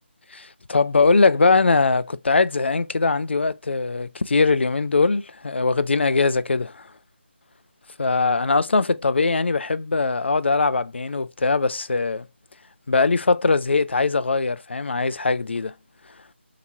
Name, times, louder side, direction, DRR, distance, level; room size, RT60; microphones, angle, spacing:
voice 1, 0.3-6.7 8.0-12.3 12.9-15.7, left 3 dB, 65° left, 0.4 m, -21 dB
2.9 x 2.9 x 3.4 m
figure-of-eight pair, 160°, 6 cm